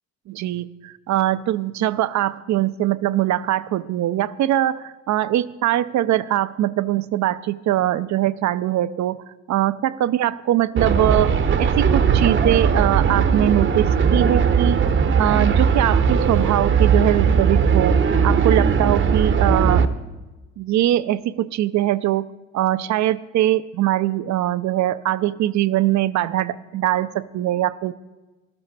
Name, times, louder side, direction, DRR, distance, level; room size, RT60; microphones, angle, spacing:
voice 1, 0.3-9.2 9.5-14.8 15.2-19.9 20.6-22.3 22.5-27.9, right 13 dB, 60° right, 16 dB, 0.6 m, -22 dB
sound 1, 10.8-19.9, right 6 dB, 40° right, 0.8 m, -18 dB
13.5 x 12.5 x 4.2 m, 1.2 s
supercardioid pair, 80°, 32 cm